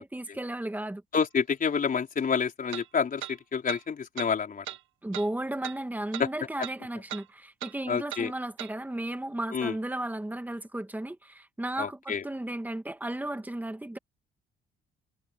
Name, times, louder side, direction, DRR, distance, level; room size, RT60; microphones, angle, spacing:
voice 1, 0.0-1.0 5.0-14.0, right 1 dB, 10° right, 2.2 m, -34 dB
voice 2, 1.1-4.6 6.2-6.3 7.9-8.3 9.5-9.7 11.8-12.2, left 6 dB, 45° left, 4.6 m, -28 dB
sound 1, 1.1-1.2 2.7-2.9 3.2-3.3 3.7-3.8 4.2-4.3 4.6-4.8 5.1-5.3 5.6-5.8 6.1-6.3 6.6-6.8 7.1-7.2 7.6-7.7 8.1-8.2 8.6-8.7, right 13 dB, 85° right, 1.6 m, -38 dB
cardioid pair, 90°, 20 cm